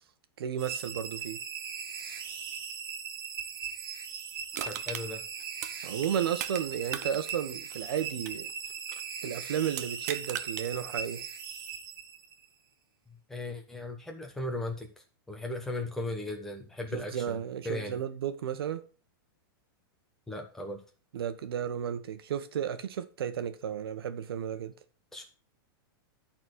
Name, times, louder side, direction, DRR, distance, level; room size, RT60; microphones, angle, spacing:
voice 1, 0.4-1.4 5.8-8.5 9.2-11.2 16.9-18.8 21.1-24.7, right 9 dB, 85° right, 1.3 m, -33 dB
sound 1, 0.6-12.5, right 7 dB, 65° right, 1.9 m, -39 dB
Crushing, 4.5-6.6 6.9-9.1 9.7-10.7 11.1-11.2, right 11 dB, 45° right, 0.7 m, -39 dB
voice 2, 4.7-5.2 13.1-14.9 15.3-17.4 17.6-18.0 20.3-20.8 25.1-25.2, left 2 dB, 5° left, 1.2 m, -37 dB
11.5 x 4.4 x 6.2 m
supercardioid pair, 170°, 12 cm